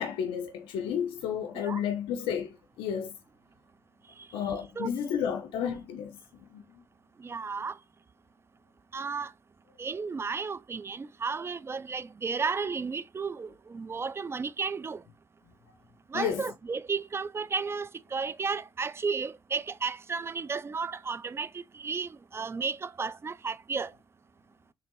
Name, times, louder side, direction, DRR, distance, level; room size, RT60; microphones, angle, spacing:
voice 1, 0.0-3.1 4.3-6.2 6.5-6.6 16.1-16.5, left 8 dB, 75° left, 0.4 m, -32 dB
voice 2, 7.2-7.8 8.9-9.3 9.8-15.0 16.1-23.9, right 5 dB, 30° right, 0.3 m, -33 dB
3.4 x 3.1 x 3.7 m
hypercardioid pair, 45°, 9 cm